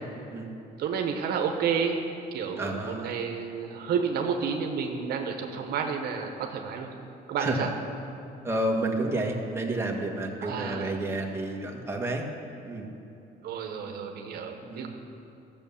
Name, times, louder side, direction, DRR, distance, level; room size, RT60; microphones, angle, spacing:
voice 1, 0.8-2.0 2.3-6.9 7.3-7.7 10.4-10.9 13.4-14.9, right 6 dB, 70° right, 4 dB, 1.1 m, -30 dB
voice 2, 2.6-3.2 7.4-7.7 8.4-12.2 12.6-12.9 14.6-14.9, right 2 dB, 15° right, 0 dB, 1.6 m, -30 dB
13.5 x 7.2 x 7.1 m, 2.8 s
cardioid pair, 110°, 17 cm